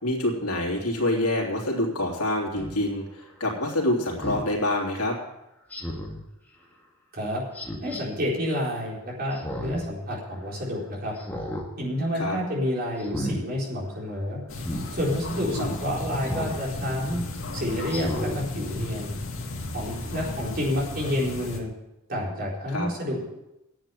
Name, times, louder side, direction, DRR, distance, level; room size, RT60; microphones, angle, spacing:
voice 1, 0.0-5.2 12.1-12.4 15.6-15.7 22.7-22.9, left 1 dB, 85° left, 0 dB, 3.1 m, -26 dB
Speech synthesizer, 2.6-2.7 4.2-4.5 5.7-6.2 7.5-8.0 9.3-9.8 10.2-10.3 11.2-11.7 12.1-12.4 13.0-13.4 14.6-14.9 16.2-16.6 17.1-17.2 17.9-18.4 18.8-18.9, equal, 10° left, 2.0 m, -33 dB
voice 2, 7.8-11.1 11.8-14.4 14.9-17.2 17.5-19.1 19.7-21.7 22.1-23.2, equal, 40° right, -4 dB, 4.2 m, -29 dB
sound 1, 14.5-21.6, left 2 dB, 60° left, 2.2 m, -34 dB
10.0 x 7.9 x 9.2 m, 0.90 s
head